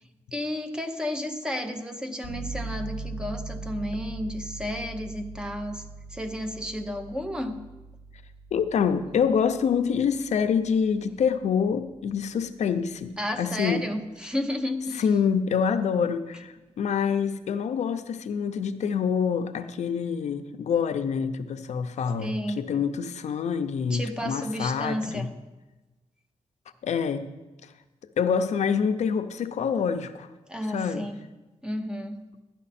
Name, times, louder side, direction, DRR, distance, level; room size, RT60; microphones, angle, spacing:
voice 1, 0.3-5.8 6.1-7.6 13.2-15.0 22.2-22.6 23.9-25.3 30.5-31.2 31.6-32.2, left 1 dB, 5° right, 0.8 m, -32 dB
sound 1, 2.2-12.8, right 3 dB, 75° right, 4.2 m, -41 dB
voice 2, 8.5-13.9 14.9-25.3 26.8-27.3 28.2-30.3 30.7-31.1, left 6 dB, 70° left, 0.6 m, -26 dB
12.5 x 10.5 x 4.2 m
wide cardioid pair, 175°, 12 cm